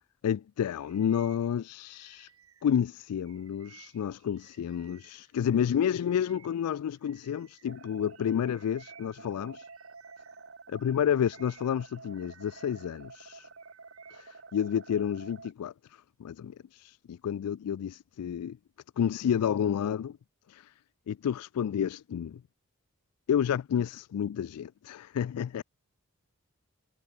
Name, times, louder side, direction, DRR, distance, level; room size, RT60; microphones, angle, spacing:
voice 1, 0.2-2.3 2.6-9.7 10.8-13.5 14.1-18.6 19.0-20.2 20.5-20.7 21.1-22.4 23.3-25.6, left 8 dB, 85° left, 0.3 m, -30 dB
Bird vocalization bird call bird song, 0.8-5.4 5.8-10.5 10.9-13.0 13.3-14.4, right 9 dB, 70° right, 4.1 m, -60 dB
sound 1, 7.7-15.5, right 4 dB, 55° right, 3.5 m, -50 dB
head